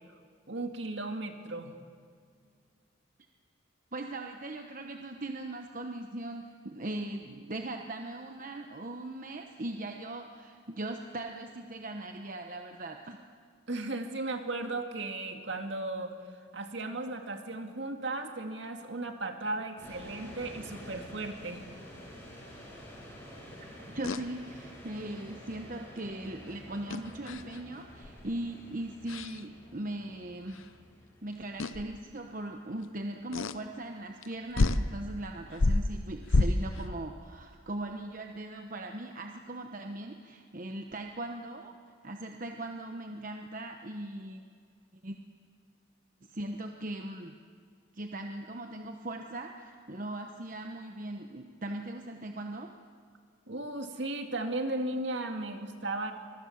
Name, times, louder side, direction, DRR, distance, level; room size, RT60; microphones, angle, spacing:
voice 1, 0.5-1.7 13.7-16.1 16.5-21.6 53.5-56.1, right 2 dB, 60° right, 5 dB, 2.3 m, -35 dB
voice 2, 3.9-13.2 23.9-30.6 31.2-41.7 42.0-44.4 45.0-45.2 46.2-47.3 47.9-52.7, right 1 dB, 40° right, 4 dB, 1.1 m, -39 dB
sound 1, 19.8-36.8, equal, 10° left, 6.9 m, -50 dB
sound 2, 24.0-24.2 26.9-27.6 28.0-28.3 29.1-29.4 30.5-30.6 31.6-31.9 33.3-33.6 34.2-34.3 34.6-34.9 35.5-36.9, left 2 dB, 80° left, 0.8 m, -28 dB
25.5 x 22.0 x 7.3 m, 2.1 s
head